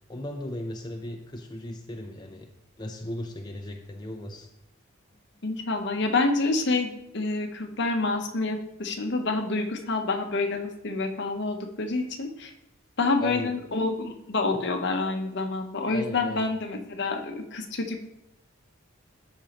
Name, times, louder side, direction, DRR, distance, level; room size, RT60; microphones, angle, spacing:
voice 1, 0.1-2.5 2.8-4.5 13.2-13.5 15.7-16.5, left 1 dB, 20° left, 2 dB, 0.5 m, -37 dB
voice 2, 5.4-12.5 13.0-18.0, left 3 dB, 55° left, 5 dB, 0.9 m, -28 dB
13.5 x 5.0 x 3.0 m, 0.80 s
head